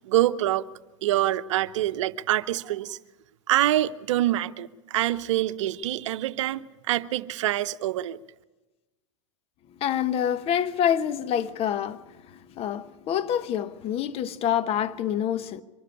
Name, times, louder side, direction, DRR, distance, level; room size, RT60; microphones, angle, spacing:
voice 1, 0.1-0.6 1.0-3.0 3.5-8.2, right 14 dB, 65° right, 0.8 m, -25 dB
voice 2, 9.8-15.6, left 9 dB, 35° left, 1.0 m, -27 dB
24.0 x 13.0 x 8.7 m
hypercardioid pair, 105°, 17 cm